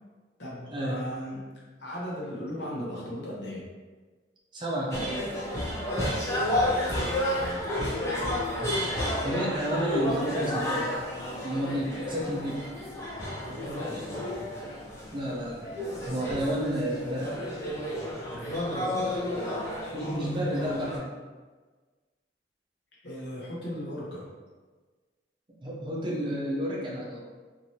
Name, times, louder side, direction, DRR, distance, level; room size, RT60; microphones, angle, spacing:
voice 1, 0.4-1.4 1.8-3.7 6.4-6.8 7.3-7.7 13.4-14.2 18.3-19.2 23.0-24.3, equal, 75° left, -5 dB, 0.9 m, -37 dB
voice 2, 4.5-5.3 9.2-10.9 11.4-12.6 15.1-15.6 16.0-17.4 19.9-21.1 25.6-27.2, equal, 25° right, -4 dB, 0.5 m, -30 dB
sound 1, 4.9-21.0, left 1 dB, 15° left, 0.7 m, -31 dB
3.1 x 2.6 x 2.7 m, 1.4 s
head